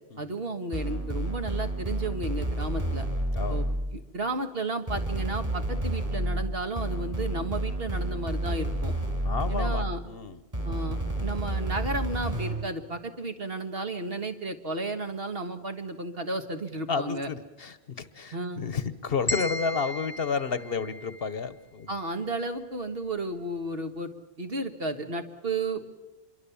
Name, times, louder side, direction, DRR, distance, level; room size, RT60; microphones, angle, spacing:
voice 1, 0.2-3.1 3.5-3.7 3.9-8.9 9.5-10.0 10.6-17.3 18.3-18.6 21.9-24.1 24.4-25.8, right 2 dB, 55° right, 7 dB, 1.8 m, -33 dB
sound 1, 0.7-4.0 4.9-10.0 10.5-12.7, right 1 dB, 30° right, 4.1 m, -30 dB
voice 2, 3.3-3.7 9.2-10.4 16.9-21.9, left 5 dB, 55° left, 14 dB, 1.2 m, -31 dB
sound 2, 19.3-21.5, left 1 dB, 20° left, 1.1 m, -35 dB
26.0 x 22.5 x 7.1 m, 1.0 s
omnidirectional pair, 1.2 m